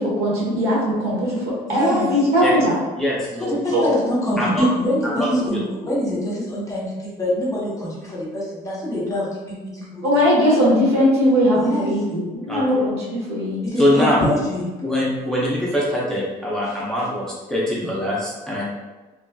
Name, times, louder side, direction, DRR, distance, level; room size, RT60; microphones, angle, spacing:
voice 1, 0.0-1.4 1.7-2.7 3.7-3.8 10.0-13.6, equal, 80° right, -5 dB, 1.2 m, -19 dB
voice 2, 1.7-2.1 3.4-10.0 11.5-11.9 13.6-14.7 16.6-16.8, left 1 dB, 20° left, -6 dB, 1.0 m, -24 dB
voice 3, 3.0-3.5 4.4-4.7 5.1-5.3 12.5-12.8 13.8-14.2 14.8-18.7, left 1 dB, 5° left, -6 dB, 0.5 m, -23 dB
3.1 x 2.4 x 2.2 m, 1.2 s
cardioid pair, 110°, 17 cm